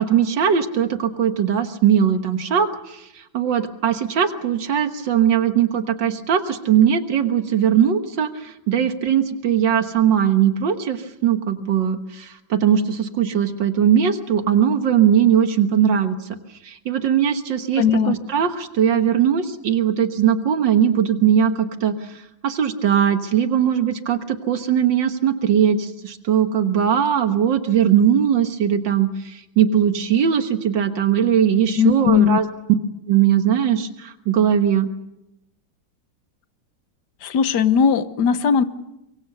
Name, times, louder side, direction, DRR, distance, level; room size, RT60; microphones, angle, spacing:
voice 1, 0.0-16.2 16.6-32.5 33.1-34.9, right 9 dB, 80° right, 8 dB, 2.0 m, -20 dB
voice 2, 17.8-18.2 31.8-32.4 37.2-38.6, left 7 dB, 65° left, 12 dB, 1.6 m, -18 dB
24.5 x 23.0 x 6.7 m, 0.89 s
omnidirectional pair, 2.0 m